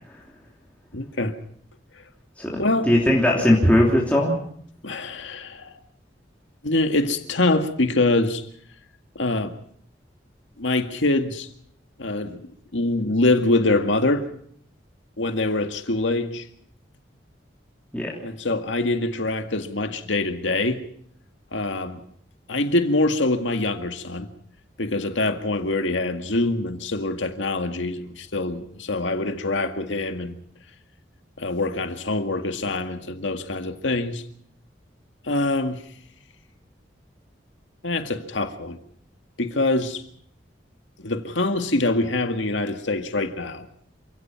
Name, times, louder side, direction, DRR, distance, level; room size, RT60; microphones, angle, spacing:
voice 1, 0.9-1.3 2.6-2.9 4.8-5.7 6.6-8.5 9.2-9.5 10.6-11.5 12.0-14.3 15.2-16.5 18.2-20.8 21.5-22.0 22.5-24.3 24.8-30.4 31.4-34.2 35.2-35.8 37.8-38.8 39.4-40.0 41.0-43.7, left 2 dB, 85° left, 2.0 m, -24 dB
voice 2, 2.4-4.4 17.9-18.2, left 1 dB, 10° left, 3.3 m, -19 dB
28.0 x 17.0 x 5.9 m
head